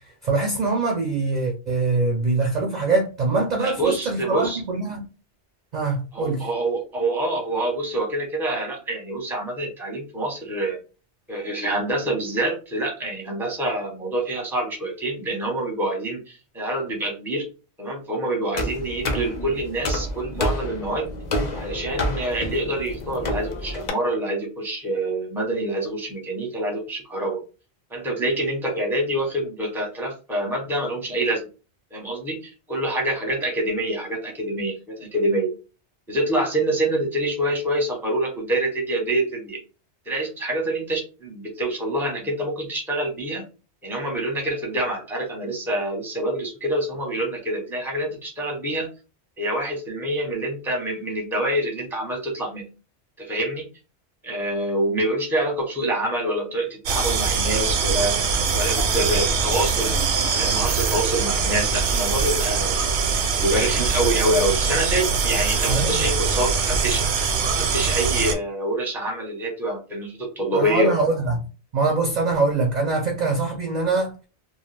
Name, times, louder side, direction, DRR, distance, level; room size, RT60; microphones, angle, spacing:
voice 1, 0.2-5.0 5.7-6.5 65.7-66.1 70.5-71.4 71.7-74.1, right 3 dB, 60° right, 0.5 m, -23 dB
voice 2, 3.6-4.6 6.1-10.8 11.3-17.4 17.8-21.1 21.5-27.4 27.9-31.4 31.9-32.4 32.7-35.5 36.1-39.6 40.1-43.4 43.8-48.9 49.4-52.6 53.2-53.7 54.2-58.2 58.5-59.9 60.3-62.8 63.4-67.0 67.5-70.9, right 1 dB, 5° right, 0.5 m, -26 dB
sound 1, 18.5-23.9, left 1 dB, 50° left, 0.6 m, -29 dB
sound 2, 56.9-68.3, right 5 dB, 80° right, 0.9 m, -22 dB
2.2 x 2.2 x 3.1 m
omnidirectional pair, 1.1 m